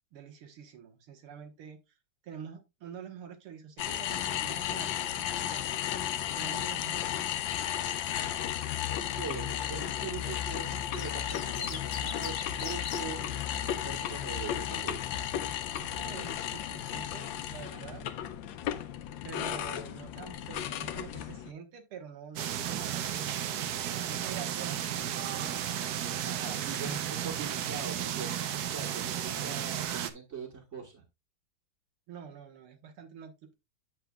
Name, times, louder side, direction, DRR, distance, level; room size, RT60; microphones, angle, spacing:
voice 1, 0.1-1.8 2.2-5.8 6.3-7.4 15.8-18.0 19.2-23.5 24.1-25.9 32.1-33.5, right 7 dB, 85° right, 2.3 m, -47 dB
sound 1, 3.8-21.5, left 10 dB, 70° left, 1.3 m, -34 dB
voice 2, 9.2-13.3 13.8-15.2 17.7-18.0 22.5-22.8 26.2-31.0, right 5 dB, 35° right, 1.7 m, -42 dB
sound 2, 10.4-13.0 14.3-14.7, left 7 dB, 55° left, 1.1 m, -40 dB
sound 3, 22.4-30.1, right 10 dB, 65° right, 1.0 m, -34 dB
8.9 x 7.5 x 2.3 m
omnidirectional pair, 2.3 m